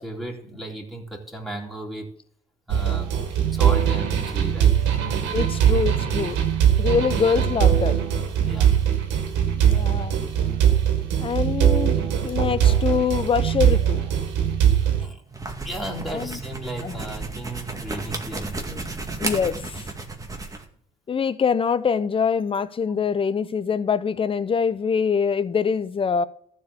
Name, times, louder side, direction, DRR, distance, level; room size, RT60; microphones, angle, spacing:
voice 1, 0.0-2.2 2.7-3.2 3.5-4.8 8.3-8.8 15.0-15.2 15.6-18.9, right 1 dB, ahead, 3.6 m, -35 dB
sound 1, 2.7-15.1, right 9 dB, 90° right, 1.8 m, -21 dB
voice 2, 5.3-6.4 6.8-7.9 9.6-10.2 11.2-12.0 12.2-14.0 16.1-16.4 16.8-17.0 19.2-19.8 21.1-26.3, left 6 dB, 30° left, 0.7 m, -24 dB
sound 2, 15.3-20.7, right 3 dB, 20° right, 2.1 m, -33 dB
14.0 x 4.7 x 8.3 m
cardioid pair, 95°, 18 cm